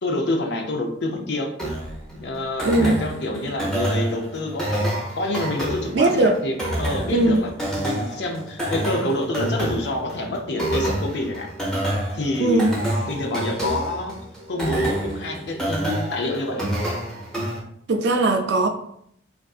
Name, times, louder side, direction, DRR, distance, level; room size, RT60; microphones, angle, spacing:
voice 1, 0.0-1.5 2.1-4.9 5.2-7.5 7.8-11.5 12.1-12.7 13.1-14.2 14.5-16.7, left 1 dB, 60° left, 2 dB, 0.5 m, -27 dB
sound 1, 1.6-17.6, right 1 dB, 5° left, 0.6 m, -28 dB
voice 2, 2.6-3.0 5.9-6.4 7.1-7.4 12.4-12.7 17.9-18.7, right 2 dB, 65° right, 5 dB, 0.4 m, -19 dB
3.4 x 2.5 x 2.3 m, 0.71 s
head